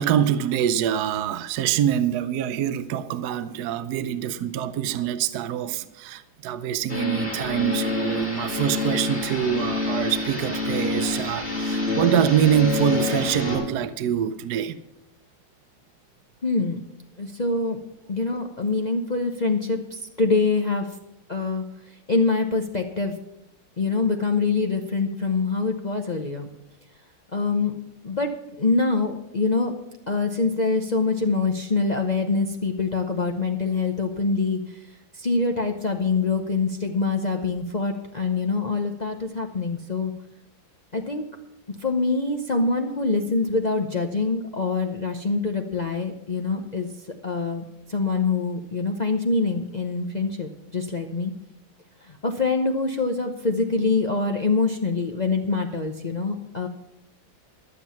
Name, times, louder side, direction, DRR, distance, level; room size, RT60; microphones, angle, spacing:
voice 1, 0.0-14.8, right 9 dB, 70° right, 1.0 m, -25 dB
sound 1, 6.9-13.6, left 3 dB, 25° left, 5.0 m, -27 dB
voice 2, 16.4-16.8 17.2-17.8 18.1-20.9 21.3-21.6 22.1-23.1 23.8-26.5 27.3-27.7 28.0-28.3 28.6-29.7 30.1-34.6 35.2-40.1 40.9-41.2 41.8-46.9 47.2-47.6 47.9-51.3 52.2-56.7, left 3 dB, 75° left, 0.4 m, -24 dB
13.0 x 7.5 x 7.1 m
omnidirectional pair, 2.2 m